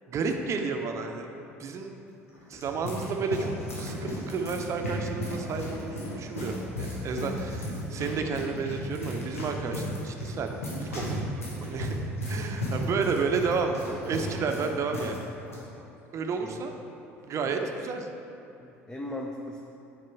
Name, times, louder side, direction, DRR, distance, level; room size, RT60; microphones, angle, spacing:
voice 1, 0.1-1.3 1.6-2.0 2.5-11.2 11.6-12.0 12.3-15.2 16.1-16.7 17.2-18.1, right 4 dB, 45° right, 4 dB, 0.7 m, -31 dB
sound 1, 2.3-15.2 15.4-15.6 16.3-16.6, equal, 85° left, 1.3 m, -35 dB
voice 2, 17.1-17.7 18.6-19.6, left 1 dB, 10° left, -1 dB, 0.7 m, -39 dB
7.4 x 5.1 x 4.6 m, 2.9 s
hypercardioid pair, 65°, 7 cm